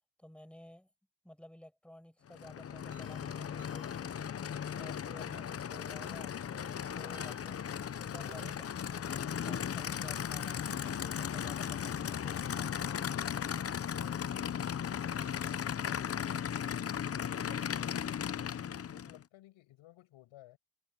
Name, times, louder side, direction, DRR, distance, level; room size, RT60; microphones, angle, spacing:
voice 1, 0.2-0.9 1.2-4.3 4.7-6.4 6.9-7.6 8.0-12.7, left 1 dB, ahead, 5.8 m, -54 dB
Aircraft / Idling, 2.3-19.2, left 8 dB, 30° left, 0.7 m, -37 dB
sound 1, 2.9-4.3 6.5-7.6 8.3-8.7 9.5-9.9 10.6-11.7 12.8-13.3 14.0-14.4 15.1-15.9 17.4-18.2, right 3 dB, 30° right, 4.8 m, -58 dB
voice 2, 15.8-16.3 18.8-20.6, left 16 dB, 80° left, 5.9 m, -56 dB
cardioid pair, 110°, 47 cm